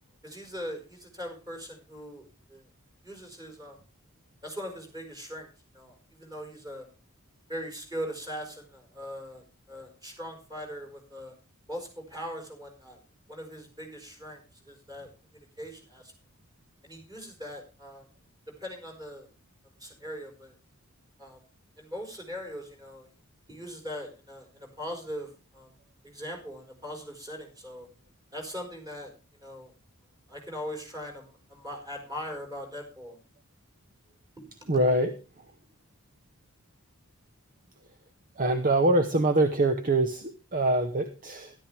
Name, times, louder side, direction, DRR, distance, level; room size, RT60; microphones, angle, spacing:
voice 1, 0.2-2.7 3.0-3.8 4.4-5.5 5.7-6.9 7.5-11.3 11.7-13.0 13.3-16.1 16.8-18.1 18.6-19.3 19.8-20.5 21.2-21.4 21.8-23.1 23.5-25.7 26.0-27.9 28.3-29.1 29.4-29.7 30.3-33.2, equal, 20° right, 2 dB, 5.0 m, -40 dB
voice 2, 34.7-35.1 38.4-41.5, right 2 dB, 40° right, 9 dB, 0.9 m, -24 dB
13.0 x 12.0 x 3.4 m, 0.33 s
head